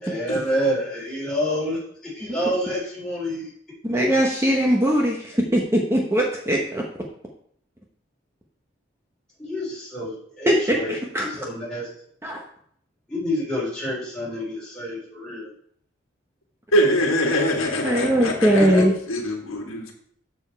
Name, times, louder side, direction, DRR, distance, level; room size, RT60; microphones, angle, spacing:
voice 1, 0.0-3.5 9.4-10.9 11.4-11.9 13.1-15.5 18.5-18.8, equal, 5° left, -7 dB, 3.6 m, -28 dB
voice 2, 3.8-6.8 10.5-11.3 12.2-12.4 17.8-18.9, equal, 15° right, -1 dB, 0.9 m, -20 dB
voice 3, 16.7-19.9, equal, 90° left, 2 dB, 1.6 m, -23 dB
7.0 x 6.8 x 4.5 m, 0.63 s
head